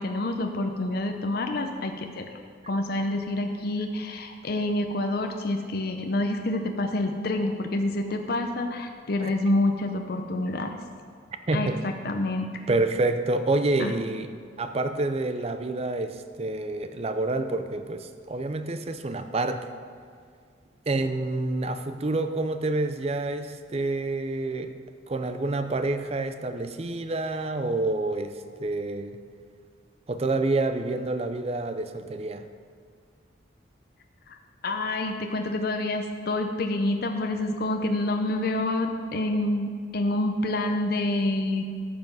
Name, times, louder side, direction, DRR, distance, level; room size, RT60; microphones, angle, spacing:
voice 1, 0.0-2.3 2.7-10.7 11.5-12.5 13.8-13.9 34.3-34.4 34.6-41.6, left 2 dB, 55° left, 5 dB, 0.6 m, -27 dB
voice 2, 11.5-11.8 12.7-14.3 14.6-19.7 20.9-24.7 25.1-29.2 30.1-32.5, right 2 dB, 30° right, 9 dB, 0.5 m, -28 dB
14.0 x 5.7 x 5.4 m, 2.1 s
head